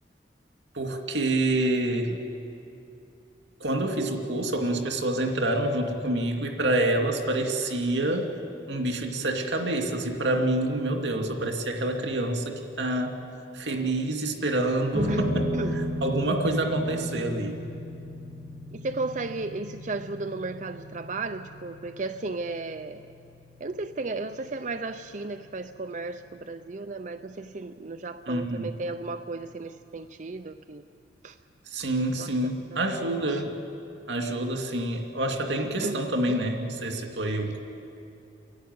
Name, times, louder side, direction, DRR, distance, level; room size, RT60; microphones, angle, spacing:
voice 1, 0.7-2.1 3.6-8.3 8.7-13.2 13.5-15.5 16.0-17.6 28.3-28.7 31.7-33.6 34.1-37.6, right 1 dB, 90° right, 3 dB, 2.4 m, -27 dB
sound 1, 14.9-27.5, equal, 10° right, 7.7 m, -36 dB
voice 2, 18.7-23.0 23.6-30.8 31.2-31.4 32.2-32.3 32.7-32.8 33.3-33.4 35.6-35.9 36.3-36.4, right 3 dB, 45° right, 8 dB, 0.6 m, -34 dB
30.0 x 11.5 x 9.5 m, 2.7 s
head